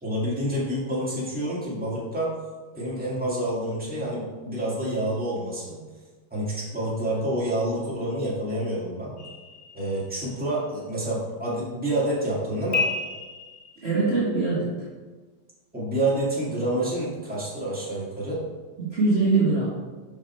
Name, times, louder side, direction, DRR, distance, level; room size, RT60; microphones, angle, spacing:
voice 1, 0.0-2.3 2.7-5.8 6.3-9.1 9.7-12.8 15.7-18.4, right 1 dB, 5° right, -7 dB, 1.9 m, -28 dB
sound 1, 9.2-10.4 12.7-14.2, left 4 dB, 40° left, 0.8 m, -31 dB
voice 2, 13.8-14.7 18.8-19.7, right 3 dB, 35° right, -9 dB, 1.5 m, -22 dB
6.4 x 5.7 x 4.4 m, 1.3 s
omnidirectional pair, 2.3 m